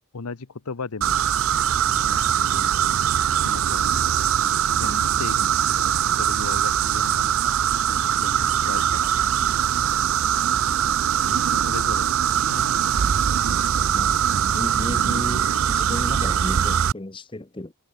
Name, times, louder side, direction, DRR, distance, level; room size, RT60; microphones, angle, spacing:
voice 1, 0.1-1.2 1.6-3.0 3.4-7.5 7.9-9.1 11.0-12.7, left 4 dB, 85° left, 0.9 m, -37 dB
sound 1, 1.0-16.9, right 9 dB, 65° right, 0.5 m, -22 dB
voice 2, 13.5-14.2 14.5-17.7, left 1 dB, 20° left, 0.9 m, -34 dB
head